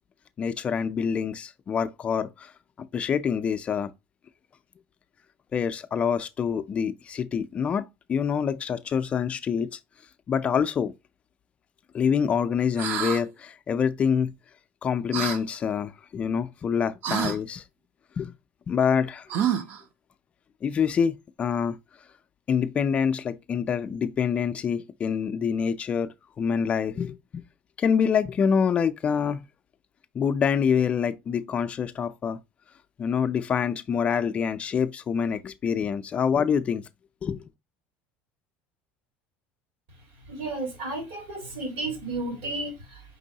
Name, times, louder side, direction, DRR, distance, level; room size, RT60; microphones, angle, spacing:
voice 1, 0.4-2.5 2.8-3.9 5.5-9.8 10.3-10.9 11.9-14.3 14.8-17.6 18.2-18.3 18.7-19.3 20.6-21.8 22.5-26.1 26.4-27.4 27.8-29.5 30.1-32.4 33.0-36.8 37.2-37.4, left 7 dB, 25° left, 0.3 m, -26 dB
sound 1, 12.8-13.2 15.1-15.4 17.0-17.4 19.3-19.8, right 8 dB, 50° right, 0.5 m, -27 dB
voice 2, 40.3-43.2, right 2 dB, 80° right, 1.9 m, -33 dB
5.3 x 3.0 x 2.7 m
cardioid pair, 150°, 5 cm